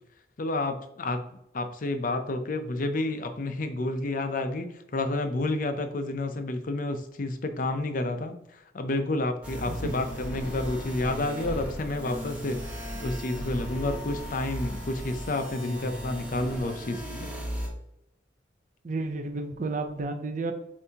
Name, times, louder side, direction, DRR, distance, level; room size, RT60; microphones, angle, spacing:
voice 1, 0.4-1.3 1.5-4.7 4.9-17.3, left 2 dB, 45° left, 8 dB, 0.5 m, -30 dB
sound 1, 9.4-17.7, equal, 5° right, 0.9 m, -36 dB
voice 2, 18.8-20.5, right 3 dB, 40° right, 6 dB, 0.4 m, -31 dB
6.9 x 2.7 x 2.8 m, 0.82 s
head